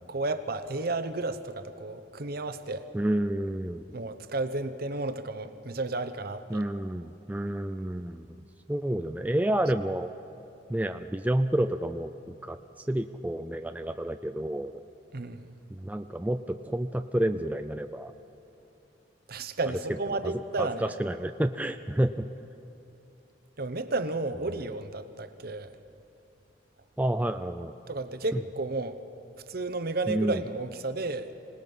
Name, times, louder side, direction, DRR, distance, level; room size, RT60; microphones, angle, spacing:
voice 1, 0.1-2.9 3.9-6.6 15.1-15.6 19.3-20.9 23.6-25.7 27.9-29.0 29.5-31.3, right 2 dB, 55° right, 9 dB, 0.9 m, -32 dB
voice 2, 2.9-3.8 6.5-8.4 8.7-10.1 10.7-12.6 12.9-14.7 15.7-18.1 20.1-22.3 24.6-24.7 27.0-27.7 28.3-28.4 30.1-30.4, right 1 dB, 10° right, 7 dB, 0.4 m, -29 dB
26.0 x 19.0 x 5.5 m, 2.9 s
head